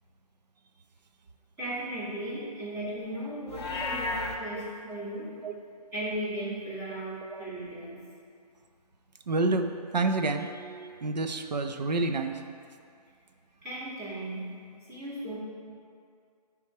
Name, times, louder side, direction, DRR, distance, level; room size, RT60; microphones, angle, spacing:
voice 1, 1.6-5.3 5.9-8.0 13.6-14.5 14.8-15.4, right 1 dB, 20° right, -11 dB, 1.9 m, -36 dB
Livestock farm animals working animals, 3.5-4.4, left 3 dB, 40° left, 0.8 m, -32 dB
voice 2, 9.3-12.4, right 3 dB, 80° right, 6 dB, 0.7 m, -29 dB
9.6 x 3.5 x 4.6 m, 2.3 s
hypercardioid pair, 175°, 21 cm